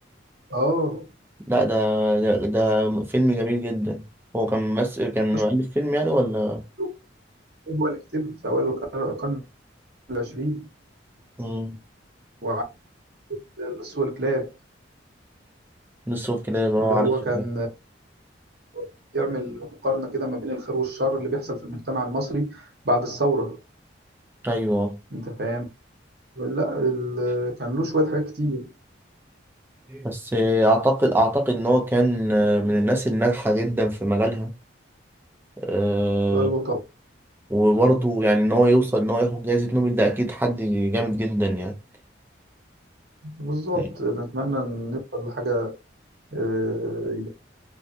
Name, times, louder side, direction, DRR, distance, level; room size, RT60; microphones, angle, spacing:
voice 1, 0.5-1.1 5.3-5.4 6.8-6.9 7.7-9.4 10.1-10.7 12.4-12.6 13.3-14.5 16.8-17.7 18.7-18.8 19.1-23.6 25.1-25.6 26.4-28.7 36.3-36.8 43.2-45.8 46.3-47.3, right 1 dB, 55° right, 0.9 m, -26 dB
voice 2, 1.5-4.0 4.3-6.6 11.4-11.8 16.1-17.4 24.4-25.0 29.9-34.5 35.6-36.5 37.5-41.7 43.8-43.9, right 1 dB, 10° right, 0.4 m, -22 dB
2.5 x 2.4 x 2.4 m
head